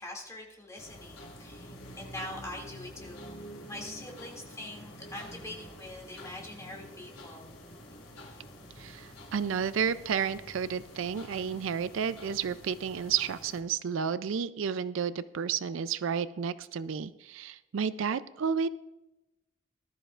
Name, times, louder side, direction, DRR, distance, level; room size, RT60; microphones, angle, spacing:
voice 1, 0.0-3.3 3.7-7.5, left 1 dB, 15° left, -1 dB, 2.3 m, -43 dB
sound 1, 0.8-13.6, equal, 80° left, 3.5 m, -48 dB
voice 2, 8.8-18.7, right 7 dB, 65° right, 15 dB, 0.4 m, -31 dB
20.0 x 12.5 x 2.4 m, 1.0 s
head